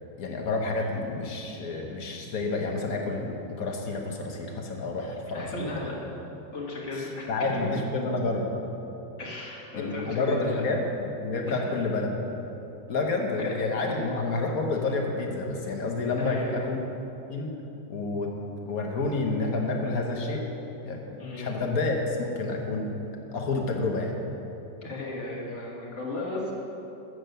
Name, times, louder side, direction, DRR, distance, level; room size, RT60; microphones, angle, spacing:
voice 1, 0.2-5.9 6.9-8.6 9.7-12.2 12.9-16.8 17.3-17.5 17.9-18.4 18.6-20.5 20.8-23.0 23.3-24.2, left 3 dB, 60° left, 1 dB, 1.4 m, -29 dB
voice 2, 5.3-6.0 6.5-7.3 9.2-10.6 11.5-11.7 13.4-13.5 13.9-14.0 16.2-16.6 21.2-21.5 24.8-26.5, left 2 dB, 40° left, -4 dB, 2.0 m, -35 dB
7.9 x 7.7 x 6.7 m, 3.0 s
omnidirectional pair, 1.9 m